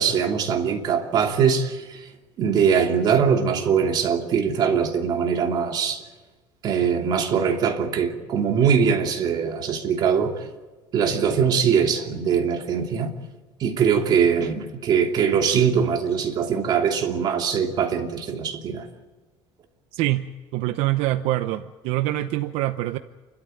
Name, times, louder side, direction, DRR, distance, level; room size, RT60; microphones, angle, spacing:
voice 1, 0.0-2.0 2.4-6.0 6.6-10.3 10.9-13.1 13.6-18.8, right 7 dB, 45° right, 2.9 m, -22 dB
voice 2, 19.9-20.3 20.5-23.0, right 15 dB, 80° right, 0.8 m, -24 dB
29.0 x 13.0 x 9.1 m
cardioid pair, 150°, 10 cm